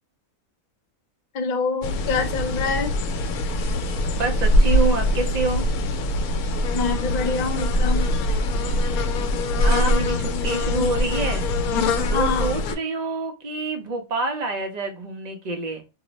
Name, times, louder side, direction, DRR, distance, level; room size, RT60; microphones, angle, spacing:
voice 1, 1.3-2.9 6.7-8.1 12.1-12.5, left 4 dB, 70° left, 0.4 m, -26 dB
sound 1, 1.8-12.7, left 1 dB, 85° left, 1.1 m, -22 dB
voice 2, 4.2-5.7 9.6-11.5 12.1-15.8, right 3 dB, 55° right, 0.4 m, -27 dB
2.9 x 2.0 x 4.0 m
omnidirectional pair, 1.5 m